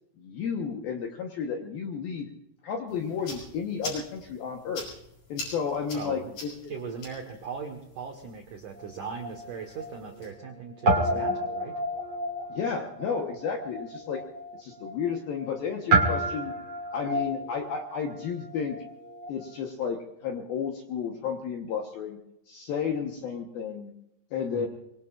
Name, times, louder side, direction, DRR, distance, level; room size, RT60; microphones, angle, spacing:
voice 1, 0.2-2.3 2.6-4.9 5.3-6.7 12.5-14.2 14.5-16.5 16.9-18.8 19.3-22.2 22.5-23.9 24.3-24.7, left 6 dB, 70° left, 2 dB, 2.3 m, -32 dB
sound 1, 2.9-10.3, left 3 dB, 40° left, 7.7 m, -44 dB
voice 2, 5.9-6.3 6.7-11.8 24.5-24.7, right 5 dB, 75° right, 2 dB, 1.9 m, -39 dB
Guitar, 8.8-10.5 10.8-19.5, right 2 dB, 40° right, 2.0 m, -30 dB
24.5 x 23.0 x 2.5 m, 0.80 s
omnidirectional pair, 5.9 m